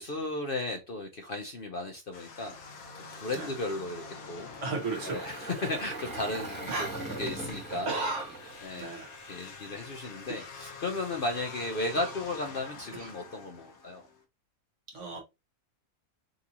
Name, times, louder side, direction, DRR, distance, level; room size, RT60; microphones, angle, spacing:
voice 1, 0.0-2.6 2.9-4.5 5.0-6.7 7.2-7.9 8.6-8.9 9.3-14.1, left 2 dB, 50° left, 0.7 m, -35 dB
sound 1, 2.1-14.2, left 4 dB, 85° left, 1.4 m, -47 dB
Engine, 4.5-9.8, right 2 dB, 10° left, 1.2 m, -41 dB
voice 2, 4.6-5.3 6.7-7.0 7.7-8.3 8.8-9.1 10.3-10.5 12.0-12.1 12.9-13.1 14.9-15.2, right 3 dB, 60° right, 1.7 m, -34 dB
5.3 x 2.7 x 2.8 m
omnidirectional pair, 1.5 m